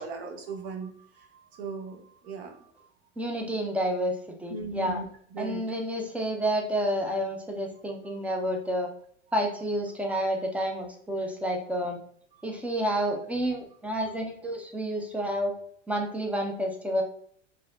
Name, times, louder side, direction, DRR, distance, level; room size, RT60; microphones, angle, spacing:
voice 1, 0.0-2.9 4.5-5.6, right 4 dB, 55° right, 3 dB, 0.9 m, -38 dB
voice 2, 3.2-4.1 4.4-5.0 5.4-8.9 9.3-12.0 12.4-15.5 15.9-17.0, equal, 5° right, 2 dB, 0.4 m, -29 dB
4.0 x 2.6 x 2.3 m, 0.65 s
figure-of-eight pair, 85°, 38 cm